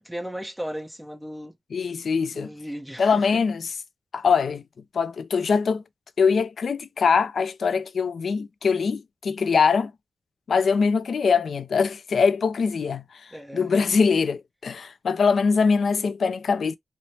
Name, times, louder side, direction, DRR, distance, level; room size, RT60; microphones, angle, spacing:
voice 1, 0.0-1.5 2.3-3.2 13.3-13.7, equal, 5° right, 0.8 m, -36 dB
voice 2, 1.7-2.5 3.0-3.7 4.1-4.6 4.9-5.8 6.2-9.9 10.5-16.8, left 5 dB, 70° left, 0.4 m, -23 dB
3.1 x 2.0 x 2.7 m
wide cardioid pair, 95°, 0 cm